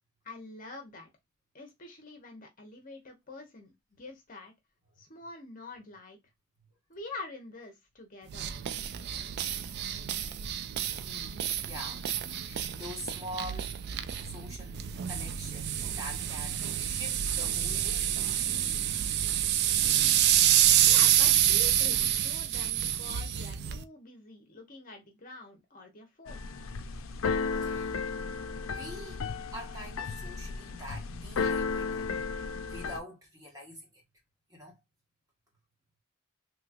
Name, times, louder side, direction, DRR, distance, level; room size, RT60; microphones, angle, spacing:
voice 1, 0.2-1.1 1.5-4.5 5.0-6.2 6.9-8.5 20.9-26.5, left 3 dB, 40° left, 0.9 m, -46 dB
sound 1, 8.3-23.8, right 11 dB, 50° right, 0.3 m, -28 dB
voice 2, 10.9-13.8 14.2-14.8 15.1-18.1 27.5-28.2 28.7-32.3 32.7-33.9 34.5-34.8, equal, 15° right, 1.4 m, -45 dB
Keyboard (musical), 26.3-33.0, left 5 dB, 75° left, 0.5 m, -34 dB
3.3 x 3.0 x 2.4 m
head